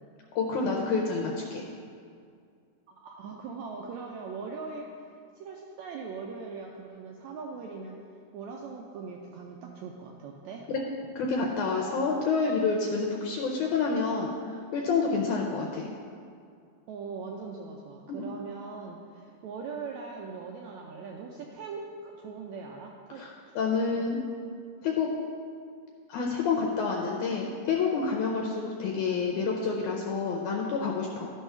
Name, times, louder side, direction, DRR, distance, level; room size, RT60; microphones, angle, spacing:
voice 1, 0.4-1.6 11.2-15.9 18.1-18.3 23.2-23.3 23.6-24.2 24.8-25.1 26.1-31.3, left 4 dB, 75° left, -1 dB, 2.0 m, -28 dB
voice 2, 2.9-5.0 5.3-8.0 8.3-10.7 16.9-23.3 23.9-24.1, right 4 dB, 85° right, 0 dB, 1.6 m, -40 dB
12.0 x 4.6 x 5.6 m, 2.3 s
omnidirectional pair, 3.9 m